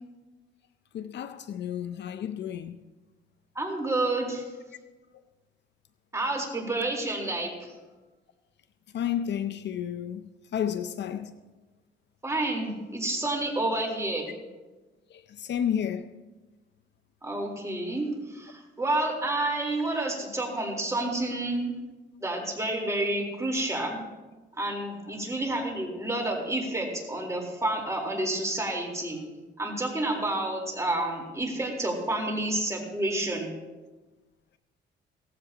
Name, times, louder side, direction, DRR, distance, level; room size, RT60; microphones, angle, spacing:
voice 1, 0.9-2.9 8.9-11.3 15.1-16.1, left 9 dB, 60° left, 0.6 m, -31 dB
voice 2, 3.6-4.4 6.1-7.7 12.2-14.3 17.2-21.7 22.2-24.0 24.6-29.2 29.6-33.5, right 2 dB, 15° right, 4.0 m, -29 dB
17.5 x 15.0 x 2.9 m
cardioid pair, 90°, 20 cm